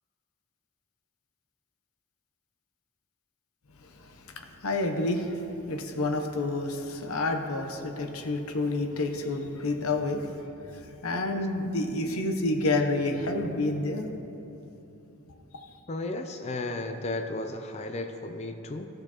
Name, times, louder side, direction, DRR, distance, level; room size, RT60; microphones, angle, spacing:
voice 1, 3.8-10.3 10.7-14.2 15.6-15.7, left 2 dB, 85° left, 5 dB, 0.8 m, -29 dB
voice 2, 15.9-18.9, left 2 dB, 30° left, 6 dB, 0.3 m, -34 dB
16.0 x 6.5 x 2.9 m, 2.9 s
head